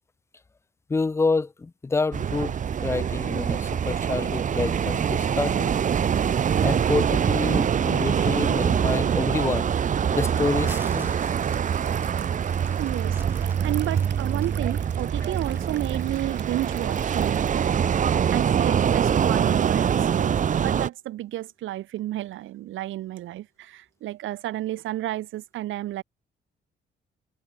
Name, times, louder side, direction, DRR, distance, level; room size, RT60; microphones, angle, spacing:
voice 1, 0.9-5.8 6.6-9.7 10.1-11.2, left 3 dB, 15° left, 0.4 m, -28 dB
sound 1, 2.1-20.9, right 8 dB, 40° right, 0.6 m, -24 dB
Liquid, 9.3-17.6, right 9 dB, 60° right, 4.5 m, -46 dB
sound 2, 10.6-14.5 15.0-16.3, right 1 dB, 10° right, 3.2 m, -45 dB
voice 2, 12.8-17.8 18.3-26.0, right 14 dB, 80° right, 1.2 m, -32 dB
cardioid pair, 90°, 20 cm